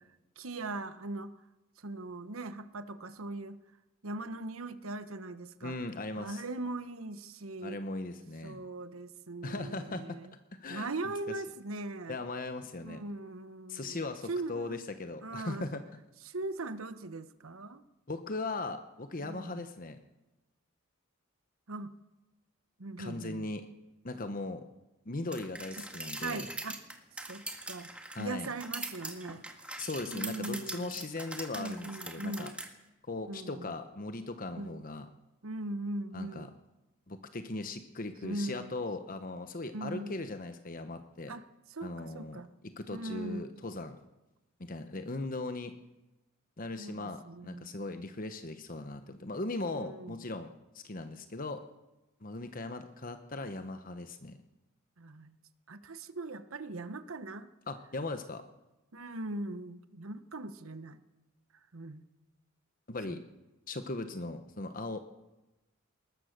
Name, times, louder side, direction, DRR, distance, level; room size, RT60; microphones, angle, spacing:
voice 1, 0.4-1.3 1.8-3.6 4.0-5.8 6.2-7.8 8.4-10.3 10.7-12.2 12.8-14.0 14.3-14.8 15.2-15.7 16.2-17.8 19.2-19.7 21.7-21.9 22.8-23.5 25.8-25.9 26.2-26.8 27.2-27.9 28.2-29.4 30.1-31.0 31.5-32.6 33.3-33.7 34.6-34.8 35.4-36.5 38.2-38.7 39.7-40.1 41.3-41.4 41.7-42.5 42.9-43.5 46.8-47.7 49.6-50.2 55.0-55.4 55.7-57.5 58.9-61.0 61.7-62.0 63.1-63.2, right 2 dB, 80° right, 12 dB, 1.1 m, -40 dB
voice 2, 5.6-6.4 7.6-8.6 9.4-10.2 10.5-11.1 12.1-13.0 13.7-16.0 18.1-20.0 23.0-23.7 24.0-24.6 25.0-26.5 28.1-28.5 29.8-32.5 33.0-35.1 36.1-36.5 37.1-41.3 41.8-42.4 42.8-44.0 44.6-45.7 46.6-51.6 52.2-54.4 57.7-58.4 62.9-63.2 63.7-65.0, left 2 dB, 40° left, 8 dB, 1.1 m, -39 dB
sound 1, 25.3-32.7, right 2 dB, 5° right, 1.8 m, -42 dB
20.5 x 19.5 x 6.7 m, 1.0 s
head